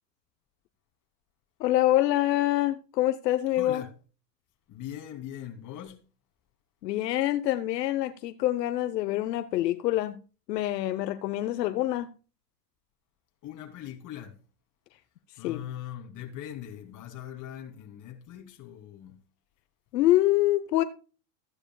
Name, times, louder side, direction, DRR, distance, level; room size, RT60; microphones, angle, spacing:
voice 1, 1.6-3.8 6.8-10.2 10.5-12.1 15.4-15.6 19.9-20.8, left 14 dB, 85° left, 1.0 m, -25 dB
voice 2, 3.5-3.9 4.7-6.0 13.4-14.4 15.4-19.2, left 11 dB, 40° left, 2.8 m, -41 dB
15.0 x 9.8 x 2.3 m
supercardioid pair, 120°, 48 cm